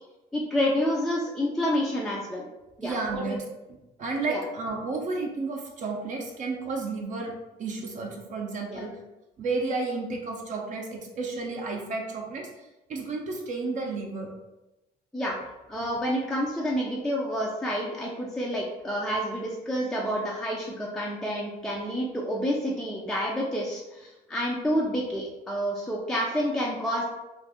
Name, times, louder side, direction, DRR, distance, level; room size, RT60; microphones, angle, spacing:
voice 1, 0.3-2.5 2.8-3.3 4.3-4.4 8.7-8.9 15.1-15.4 15.7-27.0, equal, 5° left, -4 dB, 0.4 m, -29 dB
voice 2, 2.8-7.3 7.6-8.9 9.4-14.3, right 3 dB, 50° right, 0 dB, 0.6 m, -32 dB
2.5 x 2.5 x 3.5 m, 0.99 s
cardioid pair, 110°, 17 cm